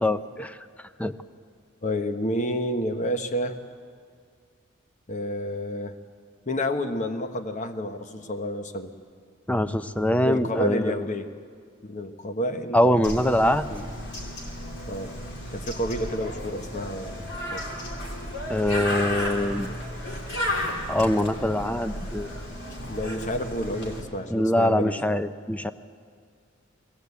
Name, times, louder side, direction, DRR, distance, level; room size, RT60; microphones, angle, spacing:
voice 1, 0.0-0.6 1.0-1.1 9.5-11.0 12.7-13.6 18.5-19.7 20.9-22.3 24.3-25.7, left 1 dB, 5° left, 11 dB, 0.5 m, -23 dB
voice 2, 1.8-3.6 5.1-6.0 6.5-8.9 10.2-11.3 11.8-13.8 14.9-15.2 15.5-17.7 22.8-25.2, equal, 35° left, 8 dB, 1.1 m, -30 dB
Bird, 13.0-24.0, left 1 dB, 55° left, 3.3 m, -33 dB
21.0 x 17.5 x 8.2 m, 2.1 s
head